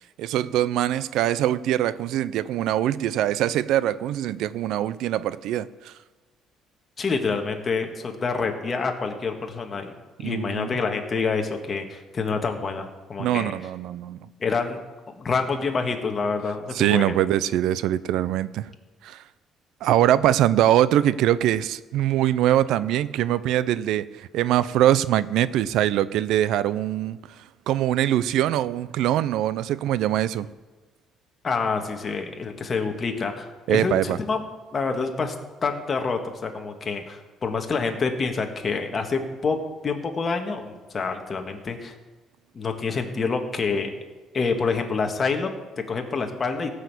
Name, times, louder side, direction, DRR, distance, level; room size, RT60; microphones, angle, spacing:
voice 1, 0.2-5.9 10.2-10.7 13.2-14.2 16.7-18.7 19.0-19.2 19.8-30.5 33.7-34.2, right 12 dB, 80° right, 17 dB, 0.5 m, -23 dB
voice 2, 7.0-9.9 10.2-13.5 14.4-14.8 15.2-17.2 31.4-34.4 34.7-35.3 35.6-39.6 39.8-41.9 42.5-43.9 44.3-45.5 45.9-46.7, left 4 dB, 30° left, 4 dB, 1.6 m, -27 dB
16.5 x 6.4 x 8.2 m, 1.2 s
cardioid pair, 135°, 0 cm